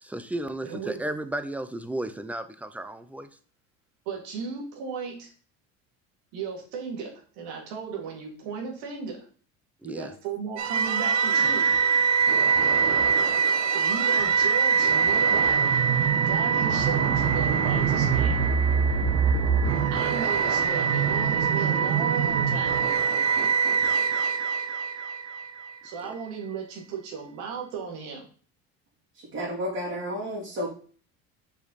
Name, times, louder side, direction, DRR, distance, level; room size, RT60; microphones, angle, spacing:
voice 1, 0.0-3.3 9.8-10.1 26.0-26.1, right 1 dB, 5° right, 11 dB, 0.5 m, -34 dB
voice 2, 0.6-1.0 4.1-5.3 6.3-9.2 9.8-11.7 13.7-15.7 16.3-18.4 19.9-22.7 25.8-28.2, right 6 dB, 75° right, 1 dB, 2.5 m, -35 dB
sound 1, 10.6-25.7, right 6 dB, 60° right, 1.1 m, -23 dB
voice 3, 29.1-30.7, equal, 45° right, -8 dB, 3.0 m, -31 dB
6.6 x 5.1 x 4.1 m, 0.42 s
cardioid pair, 125°, 31 cm